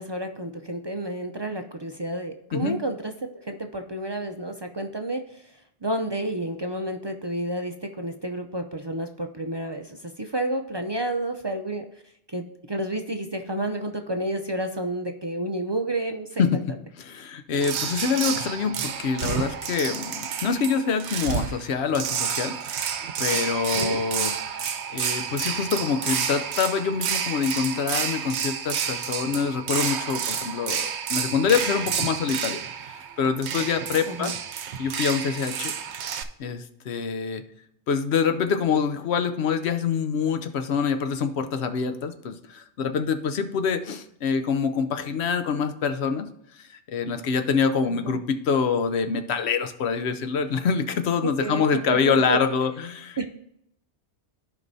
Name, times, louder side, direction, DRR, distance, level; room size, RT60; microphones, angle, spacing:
voice 1, 0.0-5.4 5.8-11.9 12.3-16.4 23.8-24.0 34.1-34.3 48.0-48.2 51.2-52.4 53.2-53.3, right 1 dB, 45° right, 5 dB, 0.3 m, -30 dB
voice 2, 16.4-22.6 23.2-24.7 24.9-34.3 34.8-35.7 36.4-37.4 37.9-46.3 46.7-53.3, left 6 dB, 70° left, 9 dB, 0.9 m, -26 dB
sound 1, 17.6-36.2, right 7 dB, 70° right, 0.9 m, -30 dB
14.0 x 5.2 x 2.7 m, 0.76 s
omnidirectional pair, 1.2 m